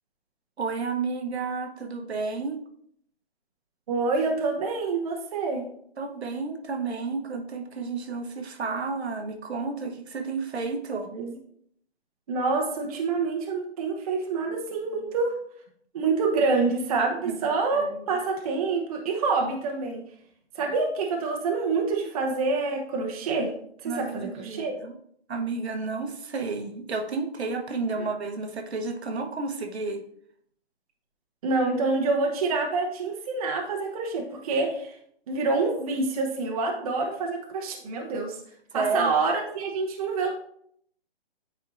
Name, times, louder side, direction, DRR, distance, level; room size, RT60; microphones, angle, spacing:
voice 1, 0.6-2.6 6.0-11.1 17.2-17.4 17.7-18.0 23.8-25.0 25.3-30.0 38.7-39.1, right 4 dB, 80° right, 6 dB, 1.0 m, -31 dB
voice 2, 3.9-5.7 11.1-11.3 12.3-15.3 15.9-20.0 20.5-23.5 23.8-24.7 28.0-28.1 31.4-35.0 35.3-38.4 38.7-40.3, right 3 dB, 35° right, 1 dB, 0.8 m, -27 dB
8.5 x 4.4 x 2.5 m, 0.66 s
hypercardioid pair, 155°, 32 cm